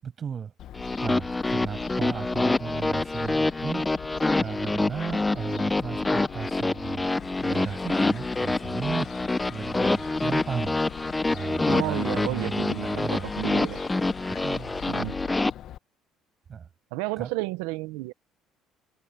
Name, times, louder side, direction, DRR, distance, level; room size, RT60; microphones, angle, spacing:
voice 1, 0.0-7.1 7.4-9.1 9.5-10.8 11.3-13.3 14.3-14.9 16.5-16.7 17.2-17.3, right 7 dB, 45° right, 8.0 m, -35 dB
Fowl, 0.6-15.8, left 12 dB, 65° left, 2.0 m, -43 dB
sound 1, 0.8-15.5, left 2 dB, 15° left, 1.3 m, -26 dB
sound 2, 7.0-15.4, left 6 dB, 40° left, 1.8 m, -48 dB
voice 2, 11.7-13.8 14.9-15.1 16.9-18.1, right 20 dB, 90° right, 1.2 m, -32 dB
supercardioid pair, 85°, 0 cm